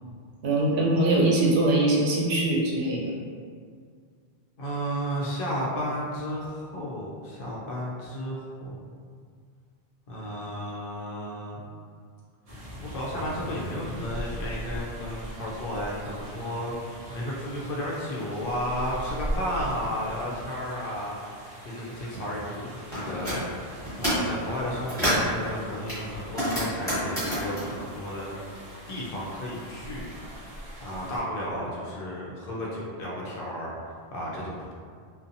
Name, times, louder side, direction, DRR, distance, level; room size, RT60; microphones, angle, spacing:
voice 1, 0.4-3.0, right 2 dB, 75° right, -4 dB, 0.8 m, -22 dB
voice 2, 4.6-8.8 10.1-11.7 12.9-16.7 17.1-21.1 21.4-28.4 28.9-34.7, equal, 65° left, -5 dB, 0.7 m, -33 dB
sound 1, 12.5-31.2, equal, 45° right, 0.6 m, -41 dB
sound 2, 22.9-23.4 23.8-24.3 24.7-25.3 25.9-28.8 29.1-30.2, equal, 5° left, 1.1 m, -29 dB
2.6 x 2.2 x 2.6 m, 2.1 s
omnidirectional pair, 1.1 m